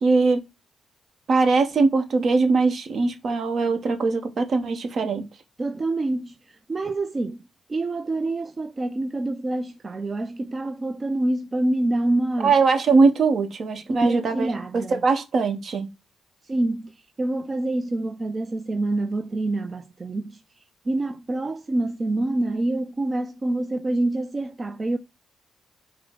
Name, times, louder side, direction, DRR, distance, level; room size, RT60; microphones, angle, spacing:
voice 1, 0.0-0.4 1.3-5.3 12.4-15.9, right 4 dB, 65° right, 0.9 m, -21 dB
voice 2, 5.6-7.4 7.7-12.5 13.9-15.1 16.5-16.9 17.2-20.4 20.9-25.0, right 2 dB, 35° right, 0.4 m, -26 dB
4.8 x 2.0 x 3.6 m
supercardioid pair, 60°, 0 cm